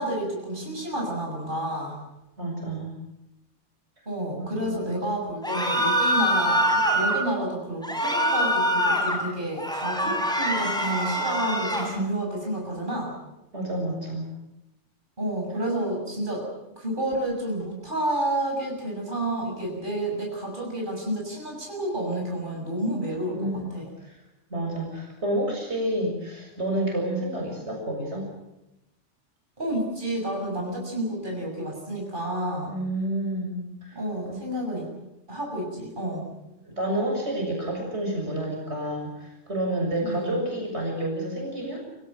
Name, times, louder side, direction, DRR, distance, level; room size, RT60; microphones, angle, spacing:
voice 1, 0.0-2.0 4.1-13.1 15.2-16.5 16.8-23.9 29.6-32.7 33.9-34.9 35.3-36.3 40.0-40.4, right 1 dB, 40° right, -1 dB, 7.3 m, -30 dB
voice 2, 2.4-2.9 4.4-5.2 11.6-12.1 13.5-14.3 23.3-23.6 24.0-24.2 24.5-28.3 32.7-34.0 34.3-34.4 34.7-34.9 36.6-41.9, right 1 dB, 60° right, 0 dB, 7.1 m, -30 dB
sound 1, 5.4-7.2 7.8-9.2 9.6-11.9, equal, 5° left, 6.0 m, -24 dB
25.5 x 17.0 x 9.3 m, 0.92 s
omnidirectional pair, 1.3 m